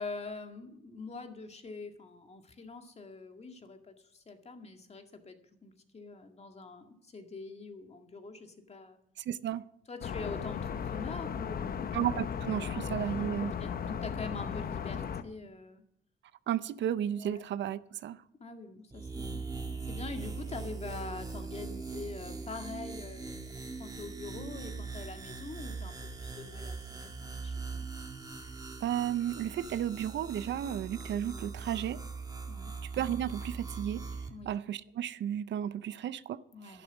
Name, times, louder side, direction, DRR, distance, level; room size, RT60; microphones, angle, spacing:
voice 1, 0.0-9.0 9.9-11.9 12.7-12.8 13.4-15.8 17.2-17.4 18.4-19.4 19.8-23.4 23.8-27.9 32.5-32.7 34.3-34.5 36.5-36.8, left 3 dB, 30° left, 5 dB, 2.0 m, -44 dB
voice 2, 9.2-9.6 11.9-13.5 16.5-18.2 28.8-32.0 32.9-34.0 34.5-36.8, right 10 dB, 65° right, 16 dB, 0.6 m, -33 dB
sound 1, 10.0-15.2, left 7 dB, 50° left, 0.9 m, -36 dB
sound 2, 18.9-34.3, right 4 dB, 20° right, 2.1 m, -41 dB
11.5 x 11.0 x 7.0 m, 0.69 s
cardioid pair, 90°, 20 cm